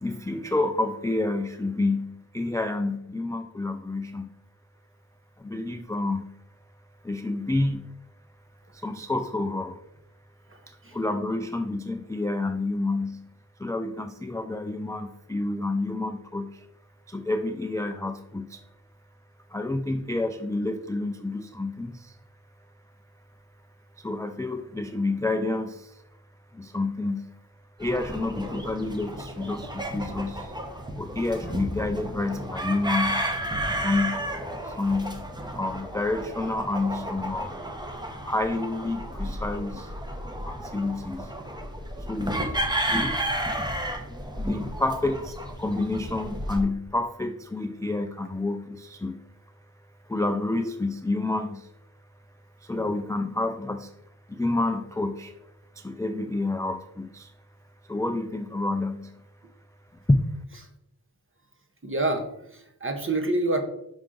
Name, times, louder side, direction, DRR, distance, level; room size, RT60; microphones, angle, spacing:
voice 1, 0.0-4.3 5.4-6.4 7.0-7.9 8.7-9.8 10.7-13.3 13.6-16.7 17.1-18.6 19.5-22.2 24.0-26.0 26.5-27.3 27.8-30.5 31.0-33.3 33.8-34.3 34.6-37.6 38.3-39.9 40.5-41.3 42.0-42.5 42.9-43.3 44.4-49.2 50.1-51.7 52.6-54.0 54.3-55.4 55.8-57.3 57.9-59.2 60.1-60.2, left 2 dB, 10° left, 8 dB, 0.3 m, -29 dB
sound 1, 27.8-46.6, right 1 dB, 10° right, 1.0 m, -32 dB
voice 2, 61.8-63.6, right 2 dB, 30° right, 5 dB, 1.1 m, -27 dB
5.5 x 4.9 x 3.9 m, 0.77 s
wide cardioid pair, 50°, 39 cm